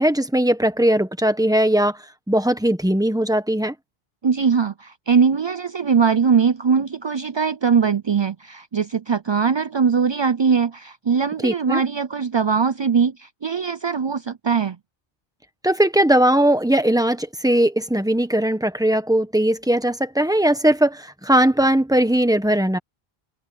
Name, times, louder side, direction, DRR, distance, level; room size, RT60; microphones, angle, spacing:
voice 1, 0.0-2.0 2.3-3.7 11.4-11.8 15.6-22.8, right 1 dB, 5° right, 1.3 m, -19 dB
voice 2, 4.2-14.8, right 6 dB, 45° right, 0.3 m, -21 dB
omnidirectional pair, 1.1 m